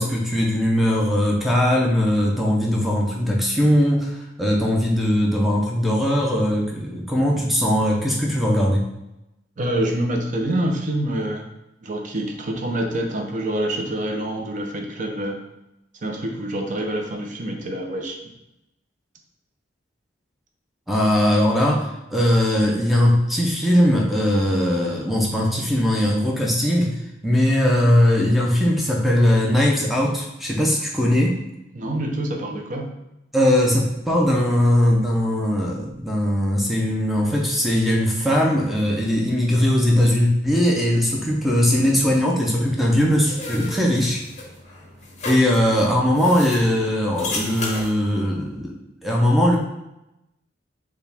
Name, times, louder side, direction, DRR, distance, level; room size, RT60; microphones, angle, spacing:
voice 1, 0.0-8.8 20.9-26.9 27.2-31.3 33.3-44.2 45.2-49.6, left 1 dB, ahead, -2 dB, 0.5 m, -20 dB
voice 2, 9.6-11.5 11.8-15.4 16.0-18.2 31.7-32.9, right 1 dB, 45° right, 2 dB, 0.6 m, -26 dB
sound 1, 42.9-47.9, left 2 dB, 40° left, 0.7 m, -34 dB
4.6 x 2.4 x 3.4 m, 0.90 s
head